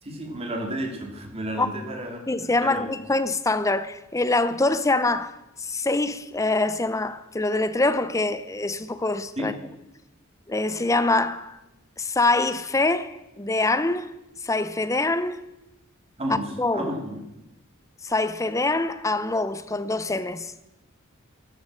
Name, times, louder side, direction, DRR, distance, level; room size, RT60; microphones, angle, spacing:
voice 1, 0.0-2.2 2.6-2.9 9.4-9.5 16.2-16.5 16.7-17.2, right 1 dB, 30° right, 2.6 m, -31 dB
voice 2, 2.3-9.6 10.5-11.6 12.0-14.1 14.4-15.4 16.6-16.9 18.0-20.5, left 2 dB, 15° left, 0.6 m, -24 dB
13.0 x 11.0 x 7.6 m
head